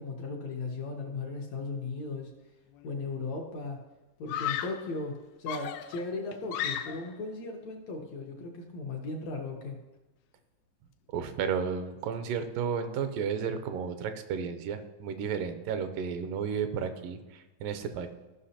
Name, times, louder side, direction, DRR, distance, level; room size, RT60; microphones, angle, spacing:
voice 1, 0.0-2.3 2.8-3.8 4.2-9.8, left 3 dB, 70° left, 0 dB, 1.8 m, -37 dB
Screaming, 2.7-3.2 4.3-4.9 5.5-7.2, left 10 dB, 90° left, 2.3 m, -35 dB
voice 2, 11.1-18.1, right 6 dB, 85° right, 8 dB, 2.2 m, -33 dB
15.0 x 6.0 x 2.8 m, 1.1 s
omnidirectional pair, 3.9 m